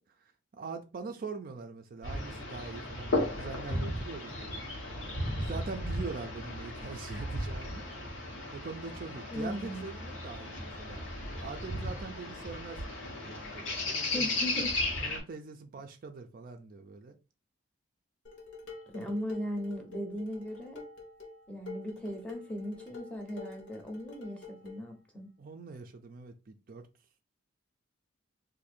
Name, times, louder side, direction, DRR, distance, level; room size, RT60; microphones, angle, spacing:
voice 1, 0.0-4.6 5.4-7.9 8.5-11.1 11.3-14.3 15.0-17.2 25.4-26.9, right 4 dB, 45° right, 0.4 m, -43 dB
sound 1, 2.0-15.2, left 1 dB, 90° left, 1.3 m, -35 dB
voice 2, 9.3-9.9 14.1-14.8 18.9-20.9 21.5-25.3, equal, 5° left, 0.7 m, -38 dB
Dishes pots and pans, 18.2-24.9, left 3 dB, 65° left, 1.0 m, -47 dB
2.6 x 2.6 x 4.2 m
head